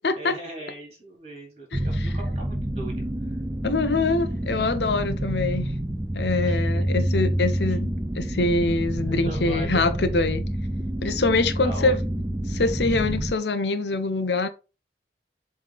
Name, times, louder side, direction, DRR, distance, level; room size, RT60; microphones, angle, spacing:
voice 1, 0.1-3.4 6.4-6.9 7.7-7.8 9.0-9.9 10.7-10.9 11.6-12.0, right 1 dB, 35° right, 3.3 m, -40 dB
sound 1, 1.7-13.3, right 1 dB, 15° right, 0.5 m, -28 dB
voice 2, 3.6-5.7 6.1-7.9 8.1-10.4 11.0-12.0 12.5-14.5, left 3 dB, 75° left, 0.8 m, -24 dB
7.5 x 3.5 x 4.1 m
head